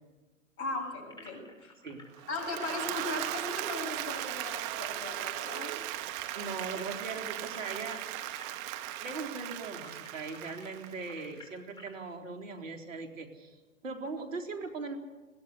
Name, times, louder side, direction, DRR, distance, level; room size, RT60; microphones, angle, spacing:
voice 1, 0.6-1.7 2.3-5.7, left 3 dB, 35° left, 2 dB, 7.6 m, -38 dB
sound 1, 1.1-5.0 5.2-5.3 5.6-12.0, left 2 dB, 10° left, 5.4 m, -54 dB
Applause / Crowd, 2.2-11.3, right 14 dB, 35° right, 1.5 m, -38 dB
voice 2, 6.3-8.0 8.3-8.4 9.0-13.6 13.8-15.0, right 4 dB, 75° right, 4 dB, 4.0 m, -39 dB
21.0 x 17.0 x 8.4 m, 1.2 s
hypercardioid pair, 115°, 39 cm